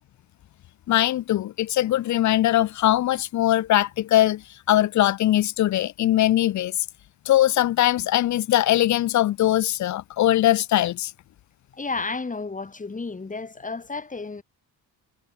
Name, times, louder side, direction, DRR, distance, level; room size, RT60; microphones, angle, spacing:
voice 1, 0.9-4.4 4.7-6.8 7.3-11.1, left 13 dB, 50° left, 0.5 m, -21 dB
voice 2, 11.7-14.4, left 3 dB, 20° left, 1.8 m, -32 dB
cardioid pair, 120°, 39 cm